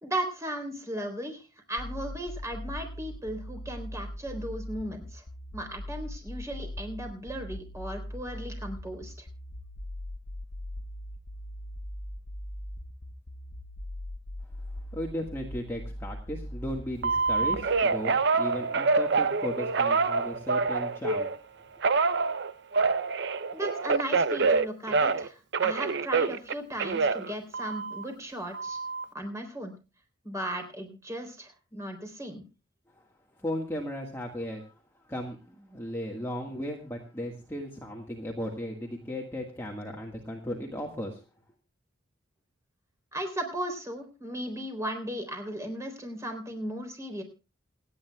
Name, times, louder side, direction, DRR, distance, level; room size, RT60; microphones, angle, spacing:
voice 1, 0.0-5.2 5.5-9.3 23.5-28.8 29.1-29.7 30.2-32.4 43.1-47.2, right 1 dB, 15° right, 4 dB, 3.6 m, -36 dB
sound 1, 1.8-17.8, left 1 dB, 55° left, 1.0 m, -40 dB
voice 2, 14.9-21.3 21.6-21.7 32.9-33.1 33.3-41.2, equal, 15° left, -1 dB, 1.7 m, -36 dB
Telephone, 17.0-21.4 21.8-25.3 25.5-28.0 28.5-29.0, right 4 dB, 60° right, 0.6 m, -26 dB
28.5 x 9.6 x 2.3 m, 0.31 s
head